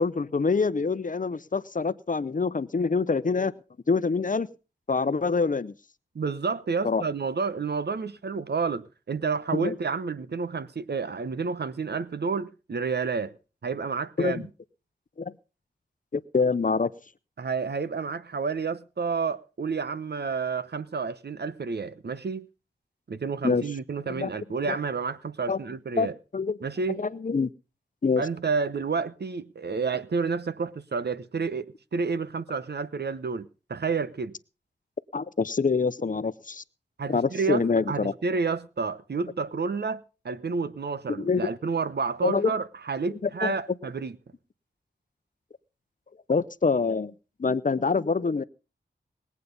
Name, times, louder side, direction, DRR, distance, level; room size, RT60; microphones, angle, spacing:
voice 1, 0.0-3.5 3.9-4.5 4.9-5.7 6.8-7.0 9.5-9.7 14.2-14.4 15.2-15.3 16.1-16.9 23.4-23.6 24.1-24.3 24.6-24.8 25.5-25.6 26.0-26.1 26.3-26.6 27.0-27.5 28.0-28.2 35.1-36.6 37.1-38.1 41.2-41.4 42.2-42.5 43.2-43.5 46.3-47.1 47.4-48.4, left 4 dB, 45° left, 0.8 m, -25 dB
voice 2, 6.1-13.3 13.6-14.4 17.4-22.5 23.1-26.1 26.6-27.0 28.2-31.7 31.9-34.3 37.0-44.2, right 5 dB, 65° right, 0.9 m, -30 dB
20.5 x 8.5 x 5.3 m
cardioid pair, 55°, 19 cm